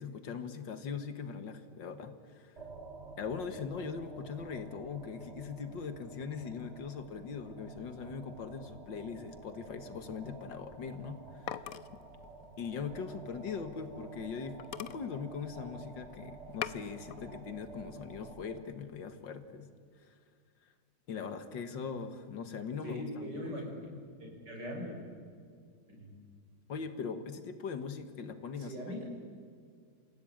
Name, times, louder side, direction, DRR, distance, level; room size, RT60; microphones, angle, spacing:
voice 1, 0.0-2.5 3.2-11.8 12.6-19.7 20.0-20.2 21.1-23.7 26.7-29.0, left 5 dB, 80° left, 9 dB, 2.2 m, -41 dB
sound 1, 2.6-18.6, right 3 dB, 35° right, 2.1 m, -51 dB
sound 2, 10.9-13.9 14.3-14.4 14.6-16.0 16.3-17.2 17.7-18.2, left 10 dB, 60° left, 1.0 m, -44 dB
voice 2, 22.8-23.7 24.2-25.0 25.9-26.1 28.6-29.0, equal, 65° right, 0 dB, 6.6 m, -41 dB
29.0 x 16.0 x 8.9 m, 2.2 s
omnidirectional pair, 2.0 m